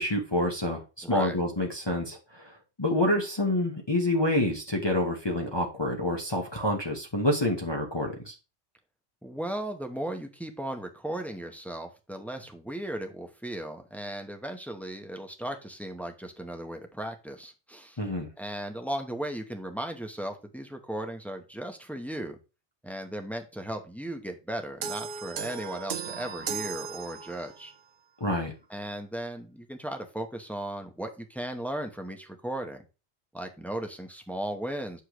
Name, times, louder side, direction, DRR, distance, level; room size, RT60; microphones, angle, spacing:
voice 1, 0.0-8.3 18.0-18.3 28.2-28.5, left 1 dB, 25° left, 0 dB, 1.0 m, -28 dB
voice 2, 1.0-1.4 9.2-18.0 18.4-22.4 22.8-27.7 28.7-32.8 33.3-35.0, right 1 dB, ahead, 4 dB, 0.8 m, -36 dB
sound 1, 24.8-27.7, right 6 dB, 55° right, 0.7 m, -36 dB
8.1 x 6.5 x 3.1 m, 0.31 s
omnidirectional pair, 1.2 m